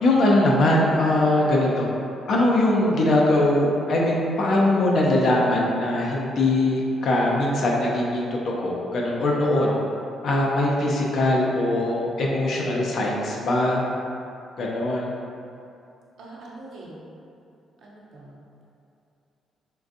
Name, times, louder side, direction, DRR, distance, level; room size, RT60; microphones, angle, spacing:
voice 1, 0.0-1.9 2.3-9.8 10.2-13.8 14.6-15.1, left 1 dB, 60° left, -3 dB, 0.5 m, -21 dB
voice 2, 16.2-17.0 17.8-18.6, right 2 dB, 70° right, -5 dB, 0.7 m, -43 dB
3.7 x 2.5 x 2.6 m, 2.7 s
cardioid pair, 90°, 0 cm